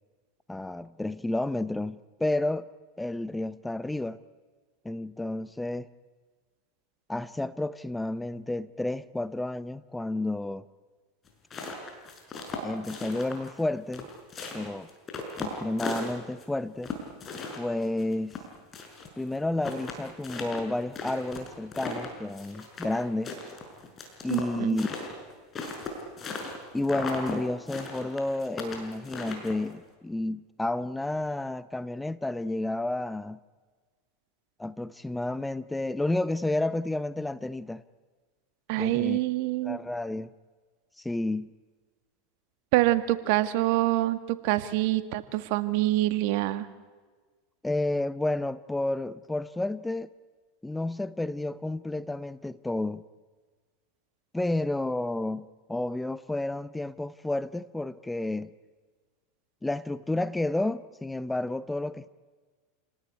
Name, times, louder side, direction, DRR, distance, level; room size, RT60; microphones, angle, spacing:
voice 1, 0.5-2.7 3.0-4.2 4.8-5.9 7.1-10.6 12.6-14.1 14.5-14.9 15.4-16.9 17.6-18.3 19.2-23.3 24.2-24.9 26.7-33.4 34.6-37.8 38.8-39.2 39.6-40.3 41.0-41.5 47.6-50.1 50.6-53.0 54.3-58.5 59.6-62.1, left 2 dB, 5° left, 0.7 m, -31 dB
sound 1, 11.3-13.6 13.9-16.4 16.8-19.1 19.3-19.4 19.6-23.0 23.2-26.6 26.8-27.4 27.7-29.7, left 4 dB, 30° left, 6.3 m, -37 dB
voice 2, 24.3-24.8 38.7-39.8 42.7-46.7, right 16 dB, 65° right, 1.7 m, -26 dB
28.5 x 18.5 x 9.5 m
hypercardioid pair, 105°, 0 cm